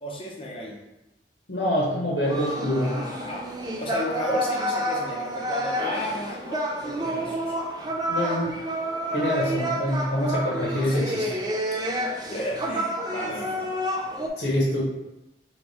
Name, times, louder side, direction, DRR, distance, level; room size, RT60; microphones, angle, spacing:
voice 1, 0.0-0.8 2.8-3.4 3.8-7.6 9.9-10.0 10.8-11.0 12.3-13.8, left 1 dB, 30° left, -2 dB, 0.7 m, -33 dB
voice 2, 1.5-3.0 8.1-8.5 9.1-11.2 14.4-14.8, equal, 70° left, -5 dB, 1.0 m, -25 dB
sound 1, 2.2-14.3, right 1 dB, 25° right, 0.4 m, -29 dB
3.4 x 2.9 x 4.1 m, 0.96 s
head